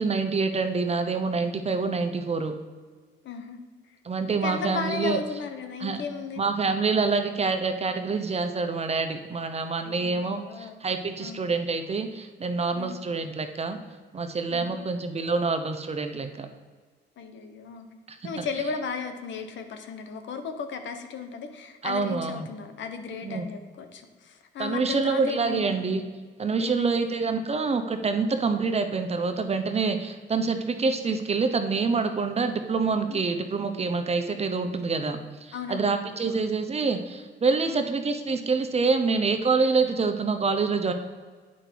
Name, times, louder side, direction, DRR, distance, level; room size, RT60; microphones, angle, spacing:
voice 1, 0.0-2.6 4.0-5.2 5.8-6.0 6.4-13.8 14.1-16.5 18.1-18.2 21.8-22.5 23.2-23.5 24.6-26.0 26.4-40.9, right 4 dB, 30° right, 8 dB, 0.7 m, -26 dB
voice 2, 3.2-3.6 3.9-4.0 4.4-6.4 9.8-10.8 11.2-11.4 12.8-13.0 14.5-14.8 17.2-17.9 18.2-25.8 26.6-27.2 33.1-33.2 35.5-36.4 37.7-37.8, left 5 dB, 70° left, 7 dB, 1.0 m, -35 dB
8.6 x 5.1 x 4.6 m, 1.5 s
cardioid pair, 90°, 20 cm